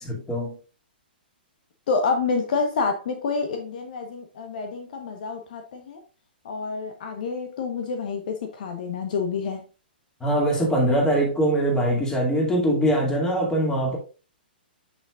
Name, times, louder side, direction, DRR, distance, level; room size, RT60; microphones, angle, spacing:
voice 1, 0.1-0.5 10.2-14.0, right 1 dB, 10° left, 2.6 m, -22 dB
voice 2, 1.9-6.0 6.4-9.6, left 4 dB, 55° left, 1.2 m, -28 dB
8.7 x 6.2 x 2.5 m
figure-of-eight pair, 120°, 5 cm